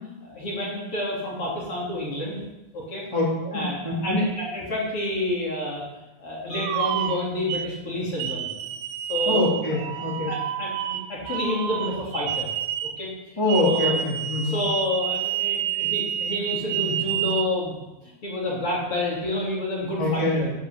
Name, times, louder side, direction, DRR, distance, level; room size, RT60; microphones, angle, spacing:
voice 1, 0.2-2.4 2.7-3.0 3.5-5.8 6.2-8.7 9.1-9.4 10.3-12.5 12.8-13.1 13.6-14.0 14.4-20.5, left 1 dB, 35° left, -5 dB, 4.2 m, -29 dB
voice 2, 3.1-4.2 9.3-10.3 13.4-14.6 20.0-20.5, left 2 dB, 10° left, -5 dB, 3.0 m, -24 dB
sound 1, 6.5-7.7 8.2-13.0 13.5-17.5, right 11 dB, 90° right, 2.8 m, -29 dB
11.0 x 9.3 x 8.1 m, 0.99 s
omnidirectional pair, 4.3 m